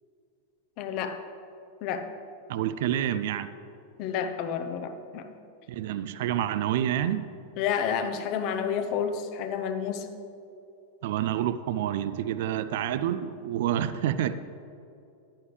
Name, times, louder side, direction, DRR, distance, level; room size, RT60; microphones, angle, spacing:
voice 1, 0.8-1.2 1.8-2.1 4.0-5.3 7.6-10.1, left 7 dB, 40° left, 8 dB, 0.8 m, -30 dB
voice 2, 2.5-3.5 5.7-7.3 11.0-14.3, right 11 dB, 55° right, 13 dB, 0.4 m, -28 dB
11.0 x 10.0 x 3.3 m, 2.7 s
figure-of-eight pair, 90°, 0 cm